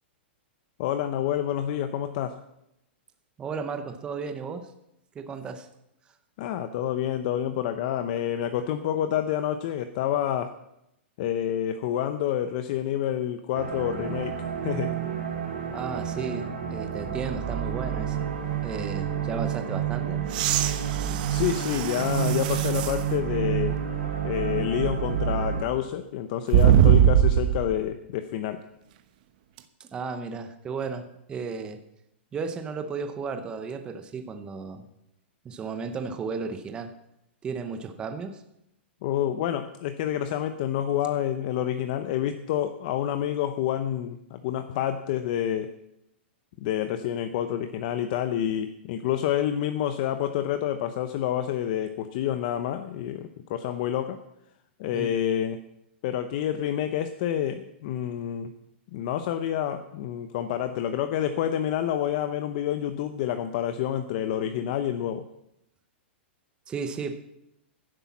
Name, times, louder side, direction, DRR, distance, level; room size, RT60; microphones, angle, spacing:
voice 1, 0.8-2.4 6.4-10.6 11.2-14.9 21.3-23.8 24.2-28.6 39.0-45.7 46.6-54.2 54.8-55.6 56.0-58.5 58.9-65.3, left 10 dB, 40° left, 9 dB, 0.7 m, -28 dB
voice 2, 3.4-4.7 5.1-5.7 15.7-18.2 18.6-20.3 29.8-31.8 32.3-34.9 35.4-36.9 37.4-38.4 54.9-55.1 66.7-67.2, right 5 dB, 15° right, 7 dB, 0.8 m, -34 dB
sound 1, 13.5-25.6, right 9 dB, 85° right, 3.8 m, -29 dB
Breathe In Blow Out, 20.3-23.0 23.7-23.8 26.5-27.7 29.6-29.7, right 10 dB, 45° right, 1.0 m, -22 dB
11.5 x 10.0 x 7.2 m, 0.84 s
hypercardioid pair, 160°, 6 cm